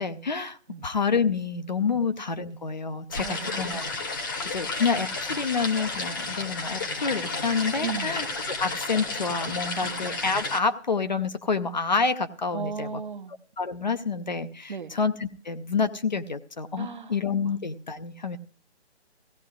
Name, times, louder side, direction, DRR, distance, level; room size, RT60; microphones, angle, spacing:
voice 1, 0.0-3.8 4.5-13.0 13.6-18.4, left 5 dB, 40° left, 0.5 m, -28 dB
sound 1, 3.1-10.6, left 3 dB, 20° left, 0.8 m, -32 dB
voice 2, 3.2-3.9 7.8-8.2 9.8-10.1 12.5-13.3 14.7-14.9 16.8-17.1 17.4-17.5, right 6 dB, 45° right, 0.7 m, -36 dB
16.5 x 16.0 x 2.3 m
figure-of-eight pair, 150°, 34 cm